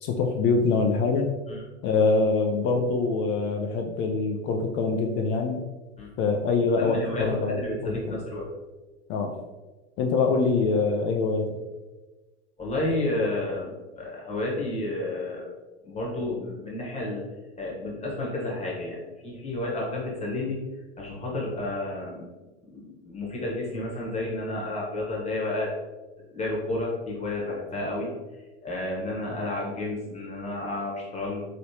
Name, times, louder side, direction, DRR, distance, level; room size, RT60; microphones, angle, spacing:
voice 1, 0.0-1.3 1.8-5.6 6.2-8.2 9.1-9.4 10.0-11.6, left 4 dB, 35° left, 3 dB, 0.4 m, -24 dB
voice 2, 6.8-8.5 12.6-15.5 15.8-17.2 17.6-20.6 21.0-22.2 22.7-25.7 26.3-28.1 28.6-31.5, left 2 dB, 20° left, -3 dB, 1.1 m, -31 dB
3.0 x 3.0 x 2.8 m, 1.2 s
hypercardioid pair, 95°, 36 cm